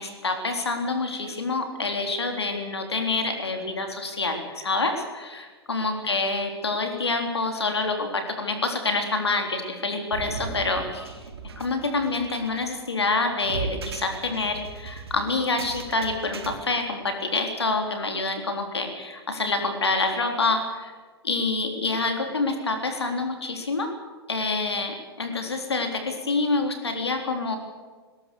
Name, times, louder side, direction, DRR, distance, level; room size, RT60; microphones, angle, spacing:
voice 1, 0.0-11.2 11.6-20.9 21.2-23.9 24.3-27.6, left 3 dB, 75° left, 4 dB, 3.8 m, -27 dB
sound 1, 10.1-16.5, right 5 dB, 70° right, 2.6 m, -37 dB
20.5 x 20.5 x 6.9 m, 1.5 s
figure-of-eight pair, 100°, 14 cm